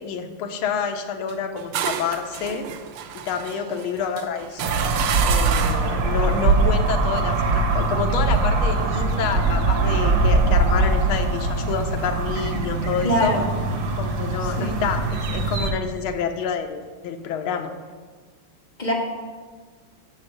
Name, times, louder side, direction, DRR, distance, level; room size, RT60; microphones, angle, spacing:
voice 1, 0.0-2.7 3.1-4.7 5.2-13.4 13.9-17.7, left 6 dB, 75° left, 5 dB, 1.6 m, -28 dB
sound 1, 1.3-6.0, right 9 dB, 75° right, 1.4 m, -30 dB
sound 2, 4.6-15.7, right 3 dB, 60° right, 1.2 m, -22 dB
voice 2, 13.0-13.5 14.6-14.7 18.8-18.9, equal, 25° left, -2 dB, 1.4 m, -22 dB
7.6 x 6.2 x 6.7 m, 1.5 s
omnidirectional pair, 2.4 m